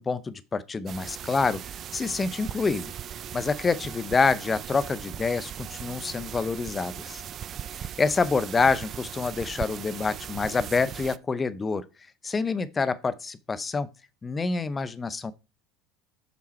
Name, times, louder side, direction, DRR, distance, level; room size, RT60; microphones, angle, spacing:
voice 1, 0.0-1.6 1.9-2.9 3.3-7.2 7.7-11.8 12.2-13.9 14.2-15.3, left 4 dB, 25° left, 0.9 m, -27 dB
sound 1, 0.9-11.2, right 9 dB, 40° right, 0.4 m, -39 dB
7.5 x 5.9 x 4.5 m
hypercardioid pair, 70°, 0 cm